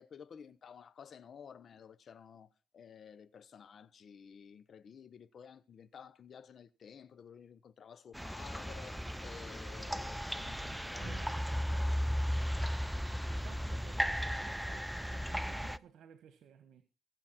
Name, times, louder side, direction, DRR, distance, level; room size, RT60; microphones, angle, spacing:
voice 1, 0.0-10.5 10.9-11.1 11.5-11.6, left 7 dB, 55° left, 1.0 m, -53 dB
sound 1, 8.1-15.8, equal, ahead, 0.5 m, -35 dB
voice 2, 10.4-12.8 13.3-16.8, right 9 dB, 75° right, 1.6 m, -56 dB
22.5 x 7.6 x 4.3 m
cardioid pair, 90°, 0 cm